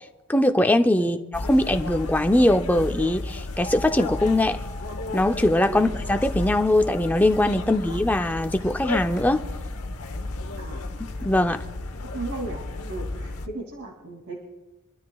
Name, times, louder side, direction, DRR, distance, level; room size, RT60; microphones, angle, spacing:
voice 1, 0.3-4.6 5.1-9.4 11.2-11.6, left 1 dB, 5° left, 6 dB, 0.5 m, -21 dB
sound 1, 1.3-13.5, left 2 dB, 85° left, 1.0 m, -33 dB
sound 2, 3.6-6.6, equal, 30° left, 1.0 m, -43 dB
voice 2, 12.1-14.5, right 2 dB, 65° right, -2 dB, 2.7 m, -36 dB
26.0 x 12.5 x 2.3 m, 1.1 s
head